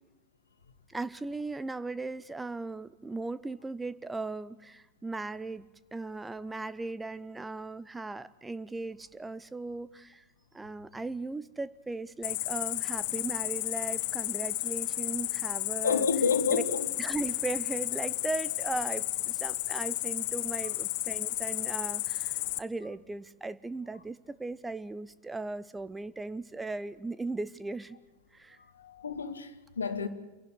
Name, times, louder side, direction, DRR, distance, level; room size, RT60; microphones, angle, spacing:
voice 1, 0.9-10.2 10.5-16.1 16.5-16.6 17.0-28.0 28.3-28.6, right 3 dB, 10° right, 0.6 m, -37 dB
Cricket, 12.2-22.6, left 19 dB, 45° left, 0.7 m, -33 dB
voice 2, 15.8-16.9 28.6-30.1, left 6 dB, 70° left, 1.4 m, -29 dB
28.5 x 11.5 x 9.7 m
figure-of-eight pair, 90°, 0 cm